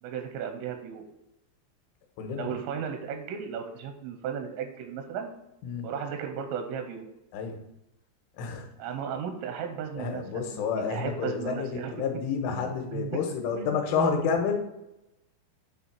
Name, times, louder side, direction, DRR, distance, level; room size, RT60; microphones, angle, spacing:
voice 1, 0.0-1.0 2.3-5.3 5.8-7.1 8.8-12.0 12.5-13.2 13.5-14.1, right 7 dB, 85° right, 5 dB, 3.4 m, -35 dB
voice 2, 8.4-8.7 10.0-14.6, left 6 dB, 80° left, 3 dB, 3.5 m, -29 dB
9.4 x 3.5 x 5.9 m, 0.88 s
omnidirectional pair, 5.7 m